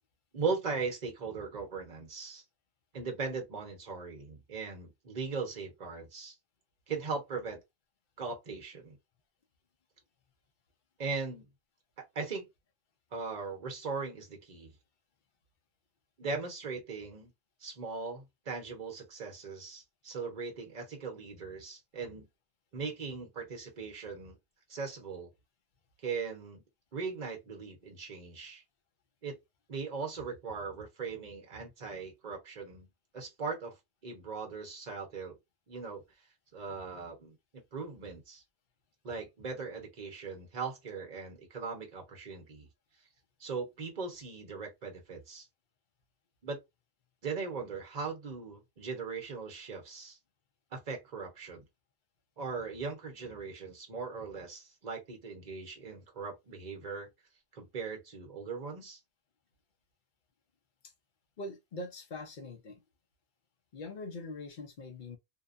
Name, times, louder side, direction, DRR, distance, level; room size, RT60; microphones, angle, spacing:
voice 1, 0.3-2.4 2.9-6.3 6.9-7.6 8.2-9.0 11.0-11.5 12.1-12.4 13.1-14.7 16.2-17.3 17.6-22.3 22.7-24.4 24.7-25.3 26.0-26.6 26.9-28.6 29.2-29.4 29.7-32.9 33.1-33.8 34.0-35.4 35.7-36.0 36.5-38.4 39.0-42.7 43.4-45.5 46.4-46.6 47.2-50.2 50.7-51.6 52.4-57.1 57.5-59.0, right 4 dB, 40° right, 0.9 m, -39 dB
voice 2, 61.4-62.8 63.7-65.2, left 2 dB, 50° left, 0.7 m, -42 dB
2.8 x 2.2 x 2.4 m
omnidirectional pair, 1.3 m